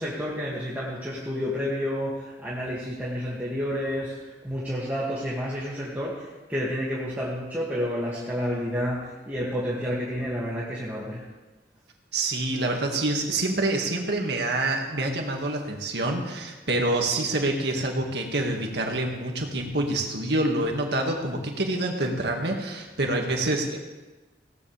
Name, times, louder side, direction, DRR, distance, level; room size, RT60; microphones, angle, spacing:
voice 1, 0.0-11.2, equal, 10° right, -8 dB, 2.3 m, -30 dB
voice 2, 12.1-23.8, right 2 dB, 70° right, 1 dB, 2.1 m, -27 dB
19.5 x 17.0 x 3.5 m, 1.2 s
head